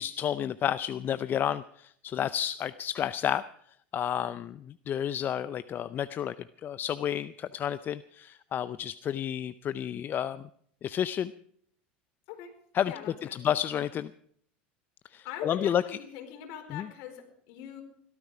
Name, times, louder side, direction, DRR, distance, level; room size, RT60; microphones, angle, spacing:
voice 1, 0.0-3.4 3.9-6.3 6.6-10.4 10.8-11.3 12.7-12.9 13.3-14.1 15.1-15.8 16.7-16.9, left 10 dB, 40° left, 15 dB, 0.5 m, -31 dB
voice 2, 12.9-13.4 15.2-17.8, left 9 dB, 60° left, 4 dB, 4.4 m, -42 dB
17.5 x 13.5 x 5.0 m, 0.62 s
hypercardioid pair, 90°, 5 cm